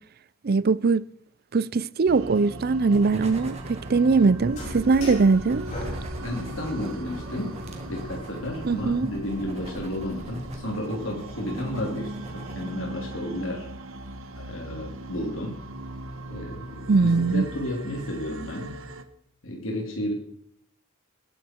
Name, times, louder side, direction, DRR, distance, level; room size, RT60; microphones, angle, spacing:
voice 1, 0.4-1.1 1.5-5.6 8.6-9.1 16.9-17.4, right 4 dB, 50° right, 0.5 m, -21 dB
sound 1, 2.1-19.0, right 1 dB, 75° right, 1.5 m, -39 dB
sound 2, 2.9-12.7, right 1 dB, 30° right, 2.3 m, -43 dB
sound 3, 4.5-10.6, equal, 35° left, 6.1 m, -40 dB
voice 2, 6.2-7.5 7.9-13.7 14.3-15.6 16.3-18.8 19.4-20.1, left 1 dB, 70° left, 3.0 m, -32 dB
20.0 x 11.0 x 4.5 m
head